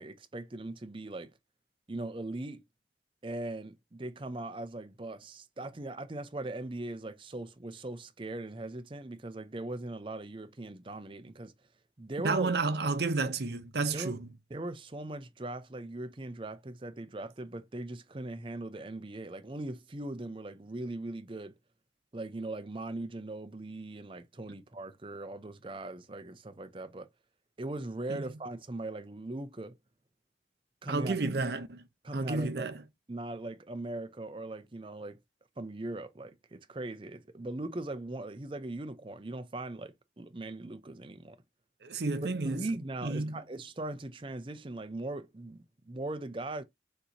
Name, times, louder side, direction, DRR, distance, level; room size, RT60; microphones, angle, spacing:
voice 1, 0.0-1.3 1.9-2.6 3.2-11.5 12.0-12.5 13.9-14.2 14.5-21.5 22.1-27.1 27.6-29.8 30.8-31.2 32.0-32.7 33.1-35.2 35.6-41.4 42.2-46.6, right 2 dB, 30° right, 0.5 m, -40 dB
voice 2, 12.2-14.3 28.1-28.3 30.9-31.8 32.1-32.8 41.8-42.6 43.0-43.4, right 3 dB, 70° right, 0.7 m, -31 dB
6.6 x 2.9 x 2.7 m
head